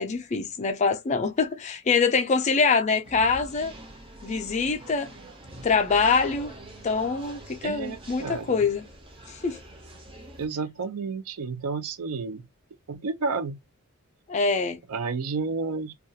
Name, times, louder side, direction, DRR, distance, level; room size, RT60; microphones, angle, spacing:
voice 1, 0.0-3.7 4.2-5.1 5.6-6.5 6.8-8.8 9.3-9.6 14.3-14.8, left 4 dB, 30° left, 0.4 m, -24 dB
sound 1, 3.0-10.5, right 1 dB, 25° right, 0.5 m, -44 dB
voice 2, 7.6-8.6 10.3-12.4 12.9-13.6 14.9-15.9, right 4 dB, 75° right, 0.4 m, -31 dB
2.3 x 2.2 x 2.6 m
head